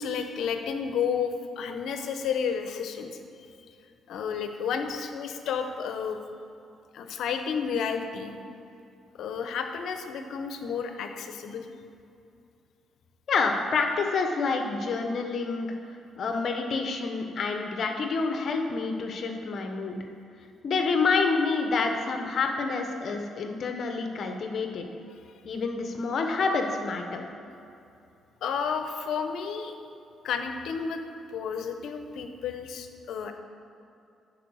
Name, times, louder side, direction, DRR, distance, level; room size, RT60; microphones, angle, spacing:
voice 1, 0.0-3.1 4.1-6.2 6.9-8.4 9.1-11.7 28.4-29.7 30.2-31.0 31.3-33.3, left 6 dB, 75° left, 6 dB, 0.7 m, -31 dB
voice 2, 13.3-15.8 16.2-20.0 20.6-24.9 25.4-27.3, left 4 dB, 55° left, 4 dB, 1.0 m, -28 dB
10.0 x 4.6 x 6.3 m, 2.7 s
cardioid pair, 90°, 0 cm